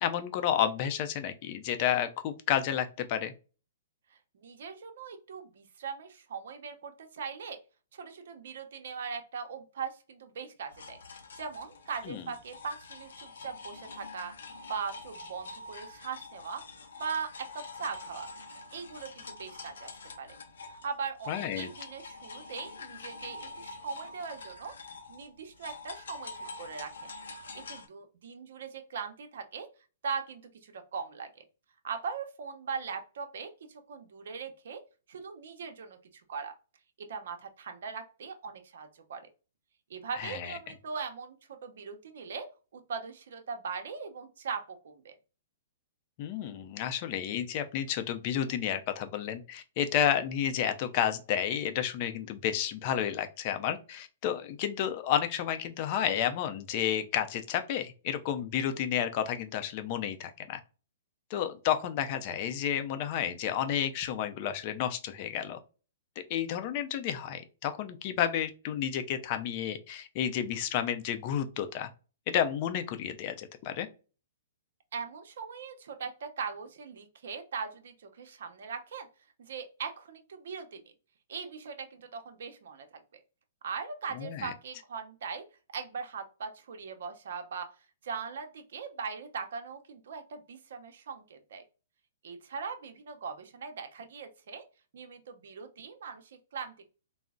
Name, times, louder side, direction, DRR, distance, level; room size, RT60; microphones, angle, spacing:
voice 1, 0.0-3.3 12.1-12.2 21.3-21.7 40.2-40.6 46.2-60.6 61.3-65.6 66.3-71.9 72.3-73.9 84.1-84.5, left 9 dB, 40° left, 9 dB, 0.5 m, -31 dB
voice 2, 4.3-7.6 7.9-11.0 11.4-14.3 14.6-18.3 18.7-20.4 20.6-26.9 27.5-29.7 30.0-31.4 31.8-34.8 35.1-36.0 36.3-36.5 37.1-39.3 39.9-45.1 74.9-79.1 79.4-80.8 81.3-82.9 83.1-83.2 83.6-85.4 85.7-87.7 88.0-91.6 92.2-94.6 94.9-96.9, right 6 dB, 70° right, 6 dB, 0.7 m, -40 dB
sound 1, 10.7-20.9 21.2-27.9, left 3 dB, 85° left, 0.6 m, -46 dB
3.8 x 2.0 x 2.3 m, 0.33 s
hypercardioid pair, 145°, 0 cm